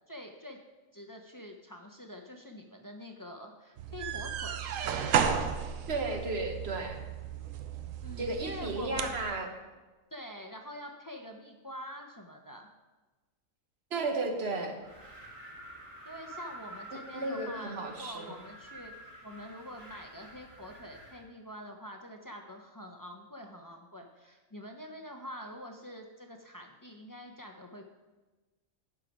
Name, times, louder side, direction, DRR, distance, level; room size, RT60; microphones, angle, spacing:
voice 1, 0.1-0.6 0.9-5.2 8.0-9.1 10.1-12.7 16.0-27.8, equal, 30° left, 2 dB, 0.4 m, -46 dB
sound 1, 3.8-9.3, right 7 dB, 75° right, 1.0 m, -33 dB
voice 2, 5.9-7.0 8.2-9.5 13.9-14.8 17.1-18.3, right 2 dB, 50° right, 3 dB, 1.3 m, -33 dB
Wind, 14.8-21.2, right 1 dB, 35° right, 1.9 m, -49 dB
10.5 x 4.8 x 5.2 m, 1.2 s
omnidirectional pair, 1.4 m